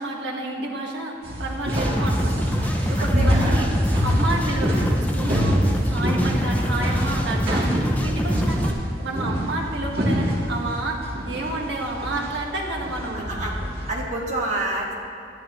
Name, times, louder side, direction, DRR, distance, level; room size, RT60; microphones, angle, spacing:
voice 1, 0.0-2.5 2.9-3.7 4.0-5.6 5.9-7.7 8.0-8.7 9.0-13.3, right 2 dB, 75° right, -1 dB, 1.6 m, -30 dB
sound 1, 1.2-13.9, equal, 60° right, 2.5 m, -26 dB
sound 2, 1.7-8.7, equal, 10° left, 0.5 m, -25 dB
voice 2, 3.0-3.7 13.1-13.5 13.9-14.9, right 2 dB, 40° right, -4 dB, 1.9 m, -28 dB
12.5 x 11.5 x 3.1 m, 2.7 s
head